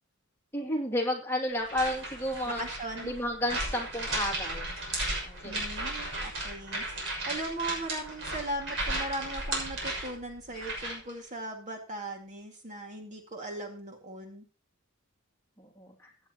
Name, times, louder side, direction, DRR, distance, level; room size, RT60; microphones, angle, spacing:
voice 1, 0.5-2.6 3.0-4.7 5.2-5.6 15.6-16.1, left 1 dB, 10° left, -1 dB, 2.7 m, -32 dB
sound 1, 1.6-11.1, right 1 dB, 65° right, 6.3 m, -35 dB
voice 2, 2.5-3.1 5.4-14.5, right 1 dB, 35° right, 2 dB, 2.2 m, -38 dB
16.0 x 9.5 x 3.0 m, 0.37 s
head